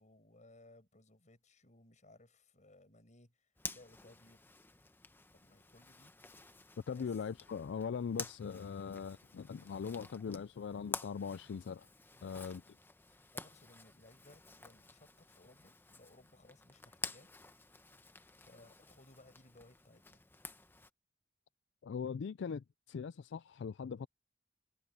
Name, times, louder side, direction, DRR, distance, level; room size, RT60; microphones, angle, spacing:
voice 1, 0.0-4.4 5.3-6.1 6.9-7.2 12.1-12.7 13.1-17.3 18.3-20.2, left 2 dB, 40° left, 6.6 m, -62 dB
Zipper (clothing), 3.6-20.9, left 3 dB, 10° left, 0.9 m, -50 dB
voice 2, 6.9-11.9 12.2-12.6 21.8-24.1, left 6 dB, 70° left, 0.4 m, -41 dB
head